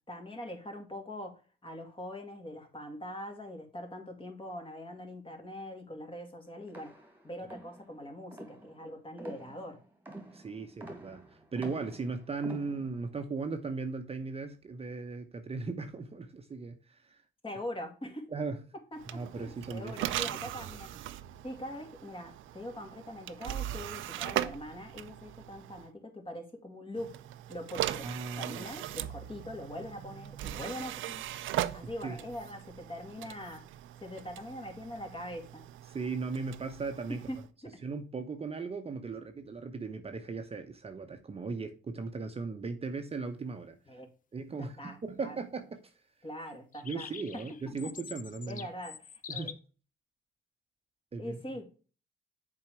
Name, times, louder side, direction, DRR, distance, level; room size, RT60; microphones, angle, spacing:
voice 1, 0.1-6.9 7.2-9.8 17.4-18.3 18.9-20.9 21.4-27.2 27.5-28.1 28.4-31.2 31.7-33.6 34.0-35.6 37.1-37.4 37.6-37.7 43.9-44.1 44.5-45.4 46.2-47.1 47.3-47.4 48.5-49.6 51.2-51.7, left 1 dB, 25° left, 2.3 m, -42 dB
sound 1, 6.7-13.2, right 1 dB, 10° right, 2.1 m, -48 dB
voice 2, 10.3-17.2 18.3-18.7 19.1-19.9 28.0-28.7 32.0-32.2 35.9-37.3 37.8-43.8 44.3-45.8 46.8-48.7 49.3-49.6 51.1-51.4, right 4 dB, 30° right, 0.9 m, -37 dB
sound 2, 19.0-25.9 26.9-37.5, right 13 dB, 80° right, 0.6 m, -39 dB
sound 3, 46.7-49.5, left 7 dB, 40° left, 0.6 m, -45 dB
7.3 x 4.7 x 4.5 m
cardioid pair, 90°, 20 cm